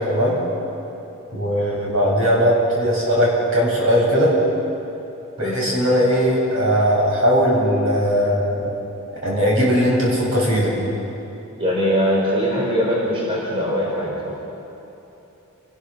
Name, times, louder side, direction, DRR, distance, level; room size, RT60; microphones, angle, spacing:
voice 1, 1.3-4.3 5.4-8.7 9.2-10.7, equal, 60° right, -4 dB, 7.9 m, -19 dB
voice 2, 11.6-14.4, equal, 25° right, -4 dB, 4.2 m, -21 dB
28.0 x 20.5 x 6.6 m, 2.9 s
head